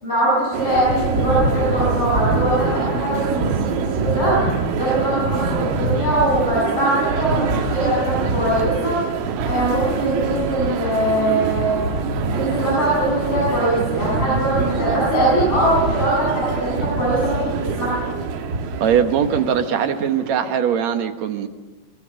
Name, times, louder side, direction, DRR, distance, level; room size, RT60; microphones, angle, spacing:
voice 1, 0.0-4.4 4.7-9.0 9.5-11.8 12.3-18.0, right 1 dB, 40° left, -6 dB, 8.9 m, -21 dB
sound 1, 0.5-20.4, right 8 dB, 80° right, 3.3 m, -27 dB
sound 2, 0.7-19.4, right 1 dB, 25° right, 3.2 m, -26 dB
voice 2, 18.8-21.5, right 8 dB, 60° right, 6 dB, 2.1 m, -20 dB
23.5 x 23.0 x 7.6 m, 1.3 s
omnidirectional pair, 4.2 m